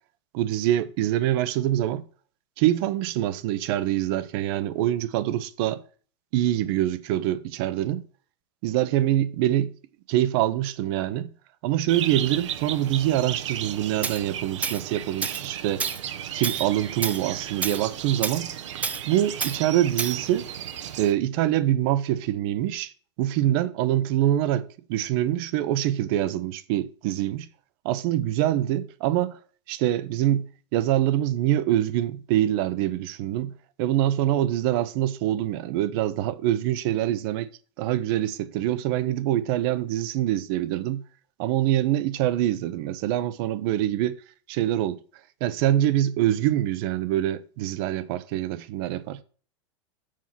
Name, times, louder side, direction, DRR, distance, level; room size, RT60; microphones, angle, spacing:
voice 1, 0.3-2.0 2.6-5.8 6.3-8.0 8.6-9.7 10.1-11.3 11.6-15.9 16.3-18.5 19.1-20.5 21.0-22.9 23.2-27.5 27.8-29.4 29.7-33.5 33.8-37.5 37.8-41.0 41.4-44.2 44.5-45.0 45.4-49.2, right 13 dB, 50° right, 0.8 m, -25 dB
sound 1, 11.9-21.1, right 10 dB, 85° right, 1.0 m, -35 dB
Tools, 14.0-14.2 14.6-14.8 15.2-15.5 15.8-16.0 16.4-16.7 17.0-17.2 17.6-17.8 18.2-18.4 18.8-19.0 19.4-19.6 20.0-20.2, right 5 dB, 10° right, 0.3 m, -29 dB
7.5 x 5.7 x 6.0 m
supercardioid pair, 145°, 15 cm